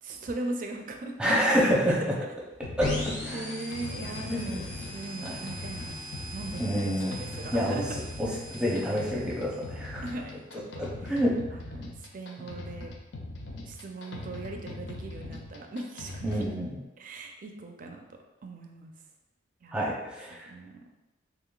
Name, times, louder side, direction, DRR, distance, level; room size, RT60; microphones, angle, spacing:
voice 1, 0.0-1.3 1.8-2.3 3.3-6.0 6.3-7.8 10.0-11.1 11.5-12.9 13.6-16.4 17.0-18.0 18.4-18.9 19.6-19.9 20.5-20.7, right 2 dB, 45° right, 3 dB, 0.4 m, -39 dB
voice 2, 1.2-2.1 2.8-3.4 4.3-4.7 5.2-5.4 6.6-7.2 7.5-7.8 8.2-10.0 10.8-11.4 16.2-16.7 19.7-20.4, equal, 5° right, -5 dB, 0.7 m, -27 dB
sound 1, 2.6-16.6, left 2 dB, 65° left, 0.5 m, -41 dB
sound 2, 2.8-10.4, left 2 dB, 40° left, 1.0 m, -39 dB
3.7 x 3.4 x 2.4 m, 1.0 s
head